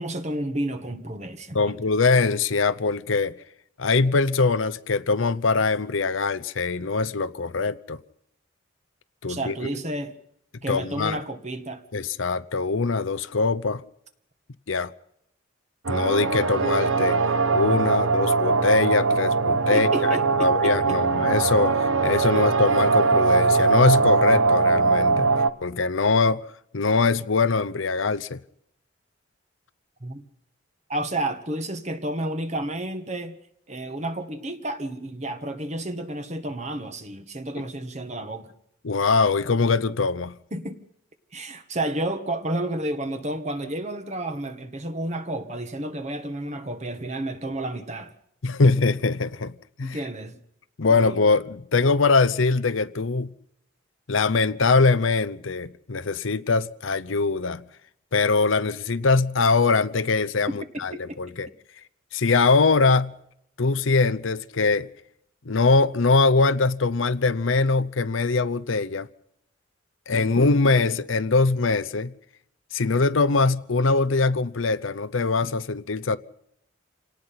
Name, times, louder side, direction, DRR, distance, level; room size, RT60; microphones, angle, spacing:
voice 1, 0.0-1.8 9.3-10.2 10.6-11.8 19.7-21.0 22.3-22.4 30.0-30.2 30.9-33.4 33.7-38.5 40.5-40.8 41.3-48.1 49.8-50.4 50.9-51.1 60.5-61.2, right 1 dB, 35° right, 1.6 m, -31 dB
voice 2, 1.5-3.3 3.8-8.0 9.2-9.7 10.7-11.2 11.9-13.8 14.7-14.9 15.9-17.2 17.5-19.9 20.4-25.3 25.6-26.5 26.7-28.4 38.8-40.4 48.4-49.5 49.8-50.0 50.8-53.3 54.1-57.6 58.1-61.5 62.1-63.2 63.6-64.9 65.5-69.1 70.1-72.1 72.7-76.2, left 4 dB, 85° left, 0.8 m, -22 dB
sound 1, 15.8-25.5, right 4 dB, 90° right, 1.3 m, -21 dB
27.0 x 18.5 x 5.9 m
head